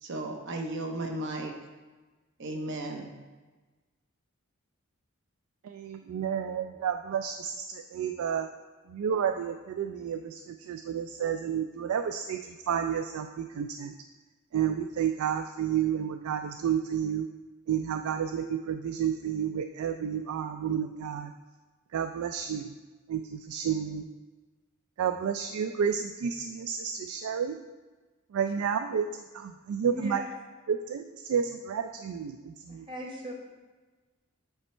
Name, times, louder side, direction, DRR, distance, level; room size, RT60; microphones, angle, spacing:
voice 1, 0.0-1.5 2.4-3.1, right 2 dB, 60° right, 3 dB, 0.8 m, -35 dB
voice 2, 5.6-8.5 8.9-13.9 14.5-17.3 17.7-21.3 21.9-22.7 23.1-24.1 25.0-27.6 28.3-30.2 30.7-32.9, right 8 dB, 80° right, 7 dB, 0.3 m, -31 dB
voice 3, 29.8-30.3 32.7-33.3, left 1 dB, 25° right, -1 dB, 1.1 m, -38 dB
8.0 x 3.2 x 4.3 m, 1.2 s
head